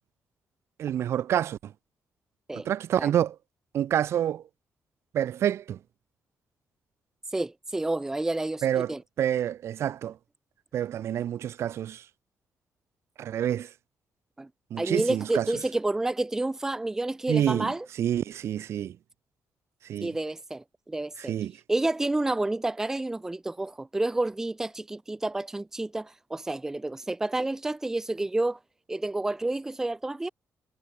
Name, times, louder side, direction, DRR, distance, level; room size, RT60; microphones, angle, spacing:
voice 1, 0.8-1.7 2.7-3.4 3.7-4.4 5.1-5.8 8.6-10.2 10.7-12.0 13.2-13.7 14.7-15.5 17.3-19.0 19.8-20.2 21.2-21.5, right 10 dB, 60° right, 1.8 m, -28 dB
voice 2, 7.3-9.0 14.4-14.5 14.8-17.9 20.0-21.3 21.7-28.6 28.9-30.3, right 2 dB, 10° right, 1.1 m, -29 dB
cardioid pair, 175°, 5 cm